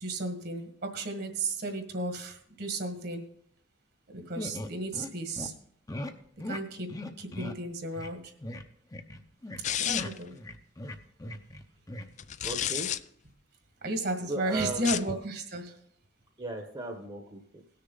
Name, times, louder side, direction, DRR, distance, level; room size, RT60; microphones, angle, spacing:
voice 1, 0.0-3.3 4.1-5.5 6.5-8.3 9.7-10.3 13.8-15.7, right 2 dB, 60° right, 5 dB, 1.7 m, -34 dB
sound 1, 4.4-5.1 5.4-5.5 5.9-6.1 6.4-6.6 6.9-7.6 7.9-8.1 8.4-8.6 8.9-9.6 9.9-11.6 11.9-12.1, left 1 dB, 20° left, 0.7 m, -38 dB
sound 2, 9.6-10.3 12.2-13.0 14.7-15.2, left 10 dB, 40° left, 0.4 m, -31 dB
voice 2, 12.4-12.9 14.3-14.9 16.4-17.6, right 2 dB, 25° right, 2 dB, 1.0 m, -36 dB
18.5 x 6.7 x 3.9 m, 0.65 s
head